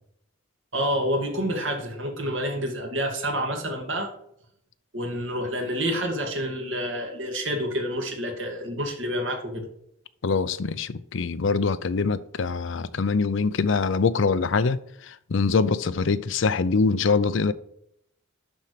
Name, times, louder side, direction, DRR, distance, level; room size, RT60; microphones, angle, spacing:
voice 1, 0.7-4.1 4.9-9.7, equal, 65° right, 2.4 m, -28 dB
voice 2, 10.2-17.5, left 4 dB, 65° left, 0.5 m, -24 dB
11.5 x 4.4 x 5.1 m
head